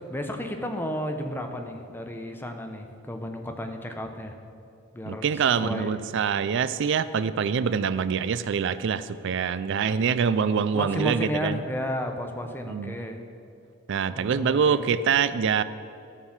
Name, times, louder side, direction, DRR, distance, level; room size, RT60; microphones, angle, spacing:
voice 1, 0.1-4.4 4.9-6.0 10.7-13.2 14.1-14.8, equal, 10° left, 4 dB, 0.7 m, -33 dB
voice 2, 5.1-11.6 12.7-13.0 13.9-15.6, right 6 dB, 55° right, 14 dB, 0.4 m, -25 dB
13.0 x 4.6 x 7.2 m, 2.6 s
head